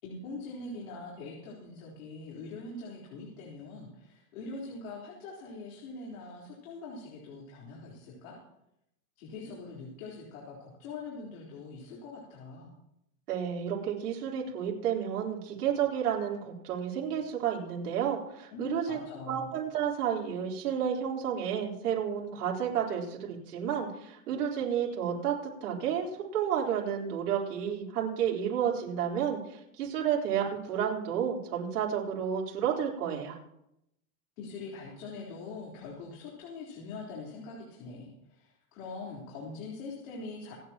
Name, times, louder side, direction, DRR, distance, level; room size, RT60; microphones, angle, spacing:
voice 1, 0.0-8.4 9.2-12.7 18.5-19.5 34.4-40.5, left 3 dB, 60° left, -3 dB, 4.1 m, -43 dB
voice 2, 13.3-19.0 19.3-33.4, right 8 dB, 90° right, -2 dB, 4.1 m, -31 dB
26.5 x 9.6 x 3.0 m, 0.82 s
supercardioid pair, 160°, 45 cm